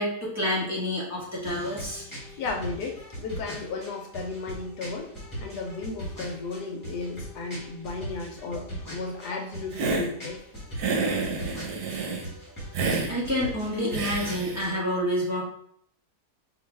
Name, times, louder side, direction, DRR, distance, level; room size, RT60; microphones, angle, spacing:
voice 1, 0.0-2.0 13.1-15.4, left 1 dB, 10° right, -6 dB, 1.2 m, -28 dB
sound 1, 1.4-14.7, equal, 10° left, 1.5 m, -40 dB
voice 2, 2.4-5.1 5.4-10.4, left 3 dB, 75° left, 3 dB, 1.3 m, -34 dB
Hiss, 9.7-10.1 10.8-12.3 12.7-13.1 13.9-14.6, right 4 dB, 80° right, 1.3 m, -28 dB
4.0 x 3.1 x 3.3 m, 0.67 s
omnidirectional pair, 1.8 m